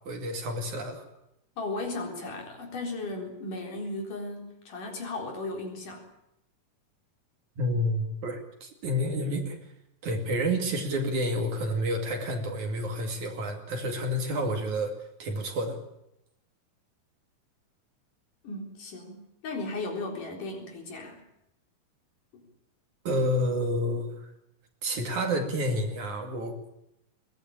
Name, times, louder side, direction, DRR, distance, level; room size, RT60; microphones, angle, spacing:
voice 1, 0.1-1.0 7.6-9.6 10.0-14.9 15.2-15.8 23.1-24.3 24.8-26.6, equal, 55° right, 4 dB, 3.5 m, -29 dB
voice 2, 1.6-6.1 18.4-21.2 22.3-22.4, left 2 dB, 55° left, 1 dB, 5.4 m, -36 dB
22.0 x 18.0 x 8.8 m, 0.84 s
omnidirectional pair, 4.4 m